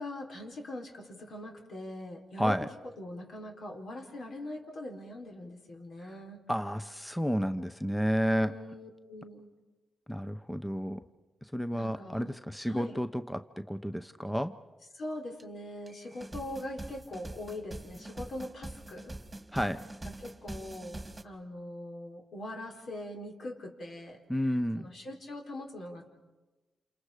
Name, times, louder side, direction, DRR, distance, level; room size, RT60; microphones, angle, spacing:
voice 1, 0.0-2.6 2.8-6.4 8.4-9.5 11.7-12.4 12.6-13.0 14.9-19.2 20.0-24.2 24.8-26.1, left 1 dB, 70° left, 2 dB, 4.0 m, -42 dB
voice 2, 2.4-2.7 6.5-8.5 10.1-11.0 11.5-14.5 19.5-19.8 24.3-24.9, equal, 5° left, 10 dB, 0.8 m, -31 dB
sound 1, 15.4-15.5 15.9-21.2, right 2 dB, 15° right, 1.9 m, -44 dB
29.0 x 28.0 x 5.0 m, 1.2 s
cardioid pair, 80°, 0 cm